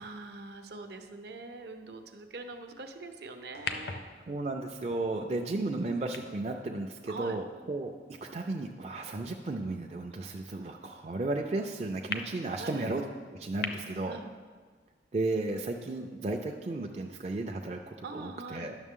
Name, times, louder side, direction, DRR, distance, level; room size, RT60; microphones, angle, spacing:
voice 1, 0.0-4.0 7.1-7.4 12.6-12.9 14.1-14.3 18.0-18.8, right 3 dB, 70° right, 6 dB, 0.7 m, -43 dB
sound 1, 3.5-8.0 8.6-8.7 12.1-12.2 13.6-13.7, left 5 dB, 65° left, 0.6 m, -41 dB
voice 2, 4.3-7.9 8.2-13.0 13.4-14.2 15.1-18.8, right 2 dB, 35° right, 2 dB, 0.4 m, -34 dB
10.5 x 6.5 x 3.7 m, 1.5 s
head